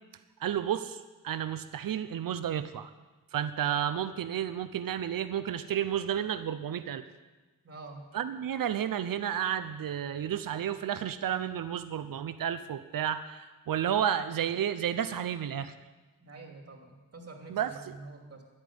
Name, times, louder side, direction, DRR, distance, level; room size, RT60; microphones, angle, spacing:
voice 1, 0.4-2.9 3.3-7.0 8.1-15.7 17.5-17.7, right 9 dB, 90° right, 12 dB, 0.8 m, -31 dB
voice 2, 7.6-8.0 16.2-18.4, right 3 dB, 45° right, 1 dB, 2.9 m, -47 dB
12.0 x 8.7 x 9.7 m, 1.2 s
wide cardioid pair, 135°, 33 cm